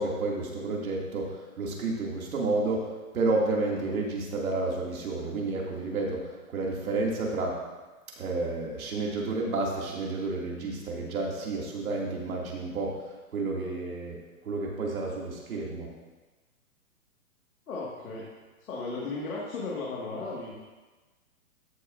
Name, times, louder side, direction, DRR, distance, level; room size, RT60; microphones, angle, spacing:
voice 1, 0.0-7.6 8.2-14.2 14.4-15.9, right 3 dB, 70° right, -2 dB, 2.4 m, -31 dB
voice 2, 17.7-18.3 18.7-20.5, left 3 dB, 70° left, -4 dB, 1.9 m, -35 dB
14.0 x 6.3 x 2.5 m, 1.2 s
hypercardioid pair, 175°, 44 cm